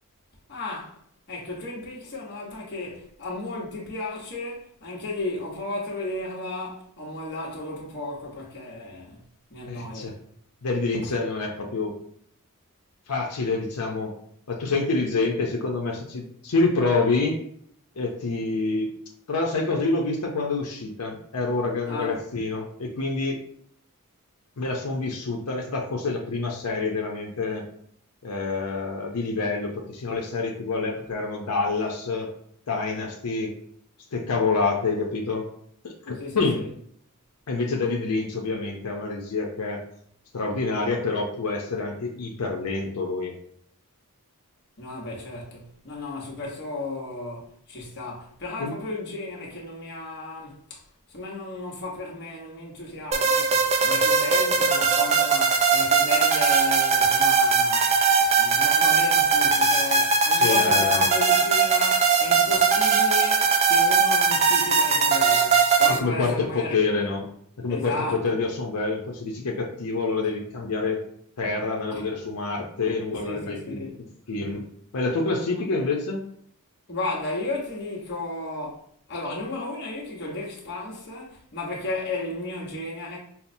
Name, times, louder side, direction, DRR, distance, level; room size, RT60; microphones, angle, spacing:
voice 1, 0.5-1.0 1.3-9.2 9.5-10.2 11.0-11.1 21.9-22.2 36.2-36.7 44.8-50.8 51.1-66.9 67.7-68.4 71.9-72.0 73.1-74.0 75.5-75.6 76.9-83.2, left 2 dB, 50° left, 1.0 m, -34 dB
voice 2, 9.7-10.1 10.6-11.9 13.1-14.1 14.5-17.4 18.0-18.9 19.3-23.4 24.6-27.6 28.2-32.3 32.7-33.5 34.1-35.5 35.8-36.6 37.5-39.8 40.3-43.4 48.6-48.7 60.4-61.1 65.9-67.3 67.6-71.0 71.4-74.6 74.9-76.2, left 3 dB, 90° left, 0.6 m, -27 dB
sound 1, 53.1-66.0, right 5 dB, 30° right, 0.3 m, -20 dB
5.5 x 2.0 x 2.6 m
head